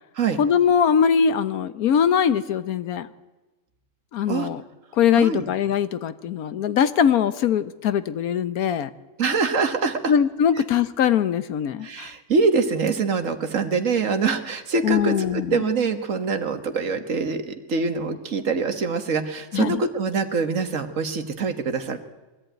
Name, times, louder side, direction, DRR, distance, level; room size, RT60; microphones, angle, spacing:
voice 1, 0.4-3.1 4.1-4.6 4.9-8.9 10.1-12.1 14.8-15.6 19.5-19.8, left 8 dB, 75° left, 13 dB, 1.3 m, -21 dB
voice 2, 9.2-10.1 11.8-22.0, right 4 dB, 60° right, 8 dB, 1.7 m, -24 dB
22.0 x 14.0 x 9.1 m, 1.2 s
omnidirectional pair, 1.6 m